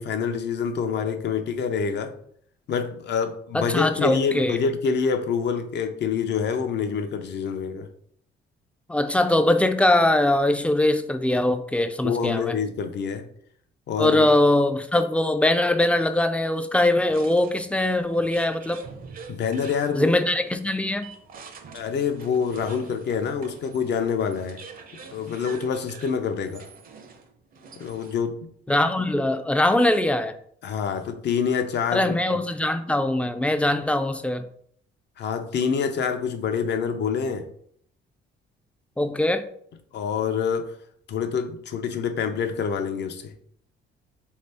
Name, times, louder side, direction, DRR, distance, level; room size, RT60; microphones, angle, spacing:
voice 1, 0.0-2.1 2.7-7.9 12.0-13.3 13.9-14.3 19.3-20.1 21.7-24.6 25.1-26.6 27.8-28.5 29.0-29.1 30.6-32.2 35.2-37.5 39.9-40.7 41.1-43.3, left 6 dB, 60° left, 7 dB, 0.6 m, -26 dB
voice 2, 3.5-4.6 8.9-12.6 14.0-18.8 19.9-21.1 28.7-30.3 31.9-34.4 39.0-39.5, left 1 dB, 5° left, 9 dB, 0.3 m, -22 dB
sound 1, 17.1-28.4, right 4 dB, 45° right, 0.5 m, -45 dB
3.4 x 2.8 x 3.3 m, 0.63 s
cardioid pair, 90°, 20 cm